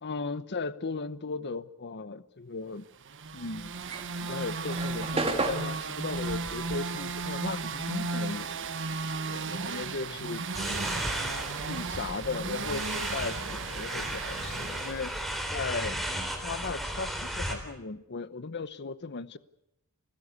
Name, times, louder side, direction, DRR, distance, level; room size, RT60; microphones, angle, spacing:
voice 1, 0.0-2.8 3.3-3.7 4.2-8.7 9.2-10.5 11.6-15.2 15.5-16.0 16.4-19.4, left 4 dB, 50° left, 0.9 m, -37 dB
sound 1, 3.0-15.9, right 4 dB, 60° right, 1.3 m, -35 dB
sound 2, 3.7-8.5 8.7-10.7, right 2 dB, 25° right, 2.1 m, -35 dB
sound 3, 10.5-17.6, equal, ahead, 3.7 m, -35 dB
29.0 x 15.0 x 8.3 m
head